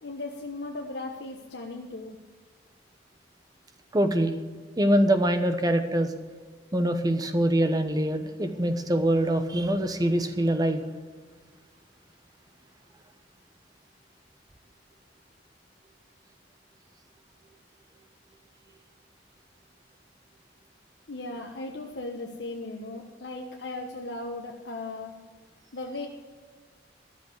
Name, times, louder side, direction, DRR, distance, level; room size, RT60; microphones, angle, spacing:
voice 1, 0.0-2.2 21.1-25.1 25.7-26.1, left 2 dB, 70° left, 0 dB, 1.2 m, -37 dB
voice 2, 3.9-4.4 4.8-6.1 6.7-10.8, right 1 dB, 20° right, 8 dB, 1.0 m, -24 dB
13.0 x 7.1 x 7.9 m, 1.5 s
head